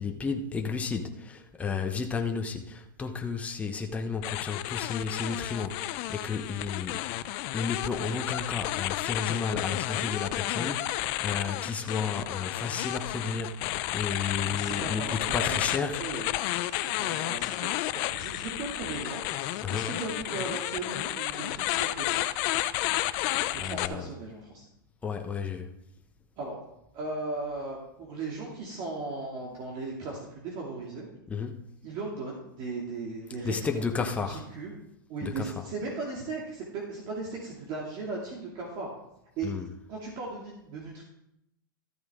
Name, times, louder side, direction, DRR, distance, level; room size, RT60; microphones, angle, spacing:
voice 1, 0.0-7.0 7.5-16.0 19.6-19.9 23.6-24.1 25.0-25.7 31.3-31.6 33.4-34.5 35.2-35.5 39.4-39.7, left 5 dB, 10° left, 4 dB, 0.9 m, -32 dB
sound 1, 4.2-23.9, left 16 dB, 45° left, 0.5 m, -32 dB
voice 2, 14.4-16.3 16.7-22.2 23.6-24.7 26.4-26.6 26.9-31.1 31.8-33.9 34.3-34.7 35.1-38.9 39.4-39.5 39.9-41.0, right 3 dB, 40° right, -3 dB, 2.5 m, -37 dB
13.5 x 8.7 x 3.7 m, 0.81 s
hypercardioid pair, 125°, 11 cm